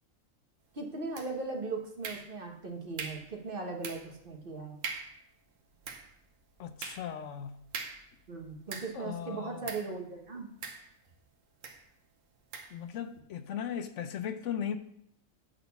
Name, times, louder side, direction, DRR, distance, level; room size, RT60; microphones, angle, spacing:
voice 1, 0.7-4.8 8.3-10.5, right 3 dB, 45° right, 1.4 m, -38 dB
sound 1, 1.1-1.6 2.0-2.6 3.0-3.3 3.8-4.2 4.5-4.6 4.8-5.2 5.7-9.1 9.6-10.0 10.6-11.2 11.6-11.9 12.5-12.8, right 5 dB, 75° right, 1.3 m, -42 dB
voice 2, 6.6-7.6 8.9-9.6 12.7-14.8, left 8 dB, 75° left, 0.9 m, -37 dB
7.7 x 4.2 x 6.8 m
omnidirectional pair, 1.4 m